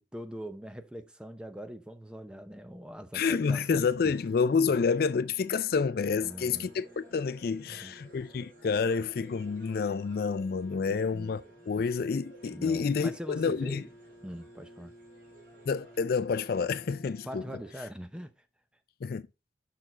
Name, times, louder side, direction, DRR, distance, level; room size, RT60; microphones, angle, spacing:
voice 1, 0.0-4.1 4.6-4.9 6.2-6.7 7.6-7.9 10.9-11.4 12.5-13.9 14.2-14.9 17.2-18.5, equal, 5° right, 0.6 m, -43 dB
voice 2, 3.1-13.9 15.7-17.4 19.0-19.2, left 5 dB, 55° left, 0.3 m, -29 dB
sound 1, 3.3-17.7, equal, 10° left, 3.3 m, -54 dB
sound 2, 6.1-16.0, right 2 dB, 50° right, 3.6 m, -59 dB
6.7 x 6.0 x 3.9 m
head